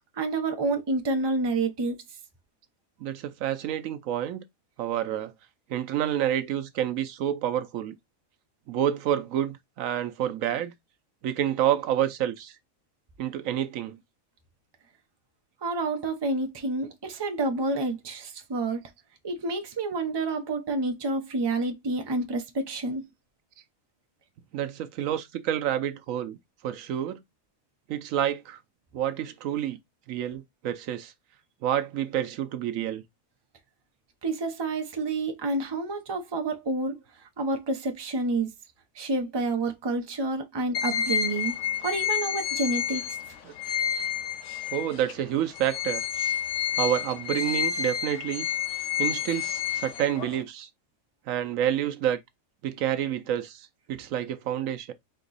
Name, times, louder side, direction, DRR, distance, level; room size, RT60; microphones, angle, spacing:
voice 1, 0.2-2.0 15.6-18.8 19.2-23.1 34.2-37.0 37.4-38.5 38.9-41.5 41.8-43.2, right 2 dB, 25° right, 0.6 m, -29 dB
voice 2, 3.0-4.4 4.8-5.3 5.7-8.0 8.7-10.7 11.2-12.5 13.2-14.0 24.5-26.4 26.6-27.2 27.9-28.6 28.9-29.8 30.1-31.1 31.6-33.0 43.4-43.5 44.7-46.0 46.8-48.5 49.0-50.7 51.3-52.2 52.6-54.9, right 11 dB, 75° right, 1.0 m, -28 dB
sound 1, 40.7-45.1 45.5-50.4, left 9 dB, 65° left, 1.1 m, -30 dB
4.3 x 2.9 x 3.9 m
omnidirectional pair, 1.4 m